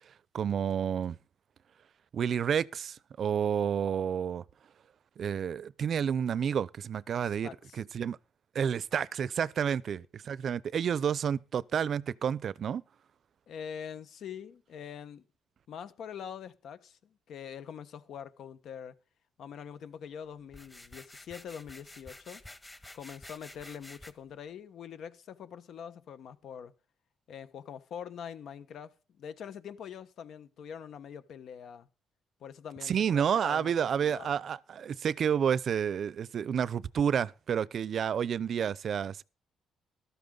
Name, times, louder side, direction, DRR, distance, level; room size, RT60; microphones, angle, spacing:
voice 1, 0.3-1.2 2.1-4.4 5.2-7.5 7.8-8.2 8.5-12.8 32.9-39.2, right 8 dB, 55° right, 0.5 m, -30 dB
voice 2, 7.2-7.8 13.5-15.3 15.7-18.9 19.4-22.4 22.9-26.7 27.3-31.9 32.4-34.3, left 8 dB, 70° left, 1.3 m, -44 dB
sound 1, 20.5-24.1, left 1 dB, 15° left, 1.5 m, -50 dB
14.0 x 13.0 x 3.9 m
cardioid pair, 90°, 0 cm